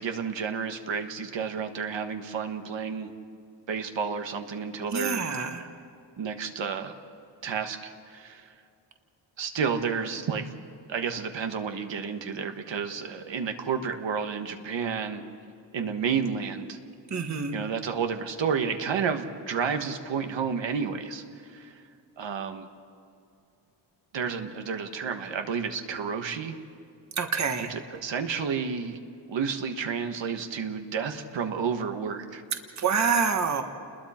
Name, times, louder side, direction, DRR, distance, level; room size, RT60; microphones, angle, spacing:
voice 1, 0.0-3.1 3.7-5.3 6.2-6.9 7.4-8.5 9.4-10.5 10.9-15.2 15.7-16.8 17.5-21.8 22.2-22.7 24.1-26.5 27.7-29.0 29.3-32.4, right 6 dB, 70° right, 6 dB, 1.5 m, -31 dB
voice 2, 4.9-5.6 17.1-17.6 27.2-27.7 32.8-33.6, right 5 dB, 35° right, 5 dB, 1.3 m, -26 dB
29.5 x 21.0 x 4.4 m, 2.4 s
wide cardioid pair, 170°, 45 cm